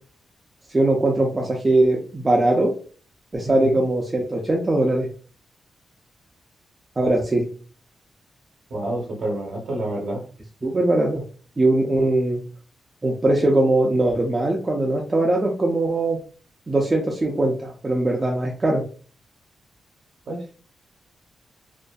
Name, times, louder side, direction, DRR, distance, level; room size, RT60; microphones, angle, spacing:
voice 1, 0.7-2.7 3.3-5.1 7.0-7.5 10.6-11.2 11.6-12.4 13.0-16.2 16.7-18.8, right 2 dB, 25° right, -1 dB, 0.4 m, -20 dB
voice 2, 3.4-3.8 8.7-10.2 20.3-20.5, right 1 dB, 70° right, -2 dB, 0.7 m, -29 dB
2.5 x 2.4 x 2.2 m, 0.41 s
wide cardioid pair, 120°, 0 cm